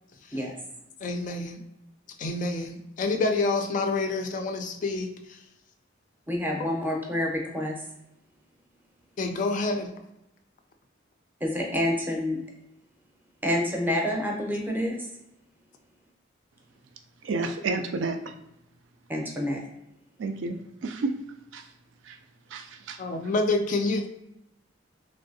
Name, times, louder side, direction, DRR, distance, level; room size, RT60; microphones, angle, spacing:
voice 1, 1.0-1.6 2.2-5.4 6.6-6.7 9.2-10.0 23.0-24.1, left 3 dB, 40° left, 5 dB, 0.3 m, -28 dB
voice 2, 6.3-7.7 11.4-12.4 13.4-15.0 19.1-19.6, left 1 dB, 10° right, 0 dB, 0.6 m, -28 dB
voice 3, 17.2-18.3 20.2-21.2 21.5-21.7 22.0-22.2 22.5-23.0, right 3 dB, 75° right, 6 dB, 0.3 m, -31 dB
3.2 x 2.6 x 2.6 m, 0.86 s
head